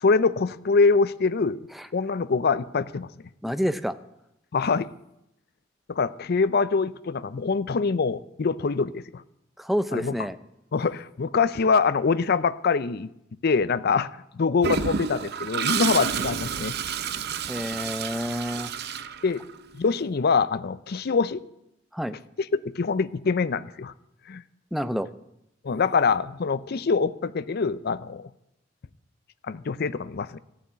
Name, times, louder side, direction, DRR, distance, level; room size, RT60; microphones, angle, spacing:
voice 1, 0.0-1.6 1.9-3.1 4.5-4.9 5.9-9.2 9.9-10.1 10.7-13.1 13.4-16.7 19.2-19.4 19.7-21.4 22.4-23.9 24.3-24.4 25.6-28.3 29.5-30.4, left 4 dB, 55° left, 0.5 m, -24 dB
voice 2, 3.4-4.0 9.6-10.4 17.5-18.7 21.9-22.2 24.7-25.1, equal, ahead, 0.5 m, -28 dB
Toilet flush, 14.6-19.7, right 6 dB, 60° right, 0.6 m, -30 dB
14.0 x 7.1 x 9.5 m
head